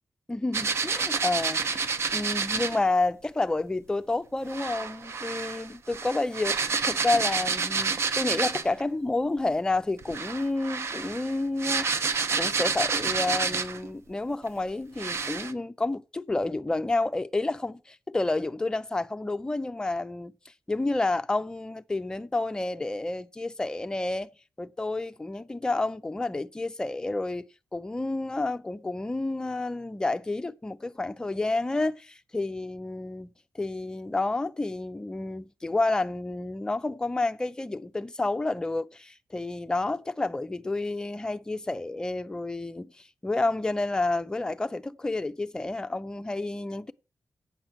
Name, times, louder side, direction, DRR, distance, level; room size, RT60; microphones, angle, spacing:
voice 1, 0.3-20.3 20.7-24.3 24.6-33.3 33.5-46.9, left 2 dB, 15° left, 0.5 m, -30 dB
sound 1, 0.5-2.8 4.5-8.8 10.0-13.9 14.5-14.6 15.0-15.5, right 5 dB, 55° right, 0.7 m, -29 dB
8.6 x 6.0 x 7.7 m
wide cardioid pair, 175°, 6 cm